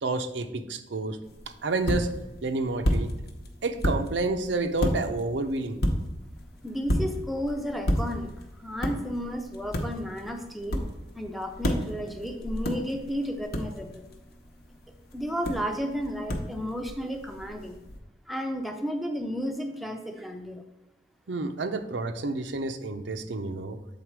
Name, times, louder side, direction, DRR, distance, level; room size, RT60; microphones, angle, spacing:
voice 1, 0.0-1.2 1.5-2.1 2.4-3.1 3.6-5.8 21.3-23.8, right 3 dB, 85° right, 7 dB, 0.6 m, -29 dB
sound 1, 1.2-18.0, equal, 60° left, 0.9 m, -33 dB
voice 2, 6.6-10.8 11.1-14.1 15.1-17.8 18.3-20.6, equal, ahead, 4 dB, 0.5 m, -33 dB
7.6 x 4.0 x 4.6 m, 0.99 s
head